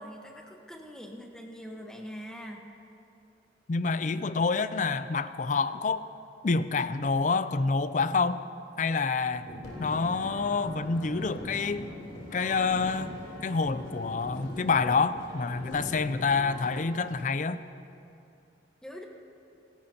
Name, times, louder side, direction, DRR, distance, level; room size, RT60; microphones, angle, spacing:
voice 1, 0.0-2.6 18.8-19.0, equal, 5° left, 1 dB, 1.2 m, -43 dB
voice 2, 3.7-6.0 6.4-8.4 8.8-9.5 9.8-11.9 12.3-17.6, left 4 dB, 40° left, 13 dB, 0.4 m, -27 dB
sound 1, 9.3-16.6, equal, 65° left, 3.4 m, -43 dB
sound 2, 9.6-17.3, left 3 dB, 90° left, 3.3 m, -48 dB
26.0 x 13.0 x 2.9 m, 2.8 s
head